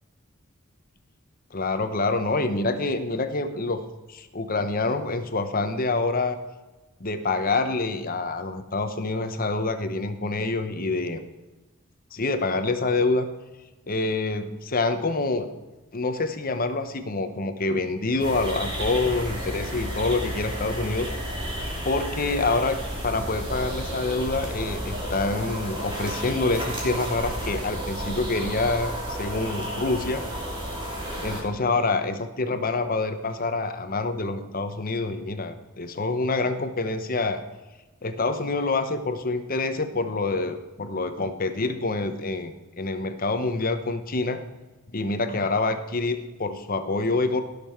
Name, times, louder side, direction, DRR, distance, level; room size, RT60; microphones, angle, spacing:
voice 1, 1.5-3.8 4.1-6.4 7.0-11.2 12.1-13.3 13.9-15.5 15.9-21.1 21.8-22.8 23.0-30.2 31.2-37.4 38.0-44.4 44.9-47.4, left 3 dB, 45° left, 9 dB, 1.0 m, -26 dB
sound 1, 18.2-31.4, equal, 25° right, 2.8 m, -32 dB
16.5 x 6.8 x 4.5 m, 1.2 s
head